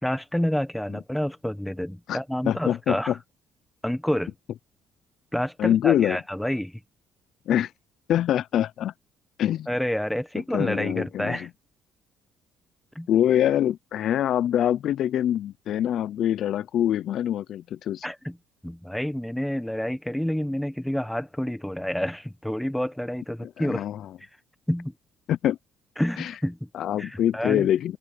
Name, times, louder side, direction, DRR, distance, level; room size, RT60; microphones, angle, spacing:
voice 1, 0.0-3.2 3.8-4.3 5.3-6.8 9.7-11.5 12.9-13.1 18.0-18.4 18.6-23.9 24.7-24.9 26.0-26.7 27.0-27.7, equal, 5° left, 1.3 m, -28 dB
voice 2, 2.4-3.1 5.6-6.2 7.5-7.7 8.1-8.9 9.4-9.7 10.5-11.5 13.1-18.1 23.6-24.0 25.3-25.6 26.2-26.3 26.7-28.0, left 11 dB, 65° left, 0.5 m, -24 dB
cardioid pair, 95°, 0 cm